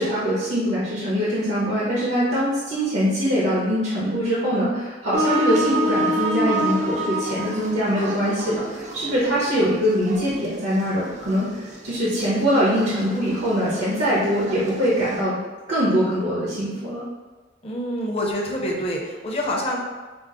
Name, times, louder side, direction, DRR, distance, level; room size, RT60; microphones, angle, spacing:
voice 1, 0.0-15.4 15.7-17.0, equal, 75° right, -8 dB, 1.0 m, -23 dB
sound 1, 5.1-15.2, right 1 dB, 40° right, 0.5 m, -29 dB
voice 2, 17.6-19.8, equal, 30° left, -1 dB, 0.7 m, -26 dB
6.0 x 2.0 x 3.7 m, 1.3 s
head